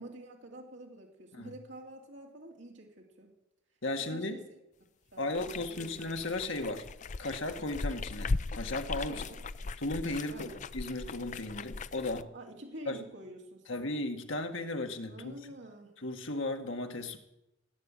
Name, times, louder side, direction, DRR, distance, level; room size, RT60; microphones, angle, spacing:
voice 1, 0.0-3.3 4.0-4.6 5.1-5.9 7.6-7.8 9.1-9.4 10.2-10.6 12.3-13.9 15.0-16.0, right 1 dB, 65° right, 0 dB, 2.6 m, -48 dB
voice 2, 3.8-4.4 5.2-6.9 7.2-9.2 9.8-12.3 12.9-13.0 13.7-15.4 16.0-17.2, left 2 dB, 80° left, 5 dB, 1.9 m, -35 dB
sound 1, 5.3-12.2, left 3 dB, 40° left, 0.5 m, -38 dB
17.5 x 8.7 x 9.1 m, 0.87 s
head